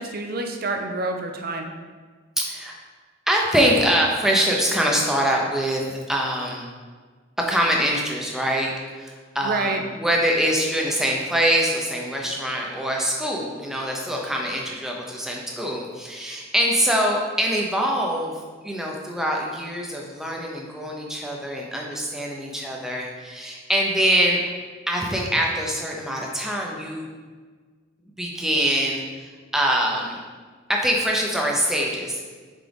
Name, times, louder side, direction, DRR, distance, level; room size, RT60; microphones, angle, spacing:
voice 1, 0.0-1.7 9.4-9.8, right 2 dB, 50° right, 4 dB, 0.6 m, -27 dB
voice 2, 2.4-2.7 3.3-6.7 7.4-8.7 9.0-18.4 18.6-24.4 24.9-27.1 28.2-30.2 30.7-32.2, equal, ahead, -1 dB, 0.8 m, -24 dB
6.1 x 4.5 x 3.5 m, 1.5 s
head